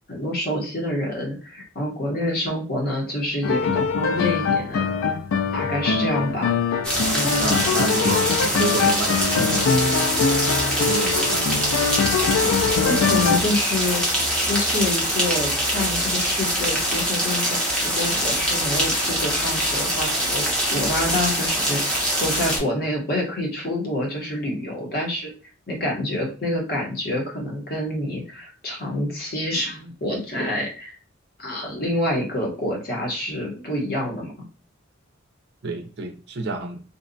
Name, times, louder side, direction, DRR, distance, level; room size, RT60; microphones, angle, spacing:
voice 1, 0.1-4.9 5.5-6.6 7.1-7.6 12.8-25.3 25.7-31.0 31.4-34.3, left 1 dB, 45° left, -1 dB, 0.9 m, -27 dB
sound 1, 3.4-13.4, left 5 dB, 75° left, 0.3 m, -23 dB
sound 2, 6.8-22.6, equal, 5° left, 0.6 m, -24 dB
voice 2, 7.4-9.9 10.8-11.6 35.6-36.8, right 3 dB, 55° right, 5 dB, 0.4 m, -29 dB
2.7 x 2.2 x 2.5 m, 0.36 s
head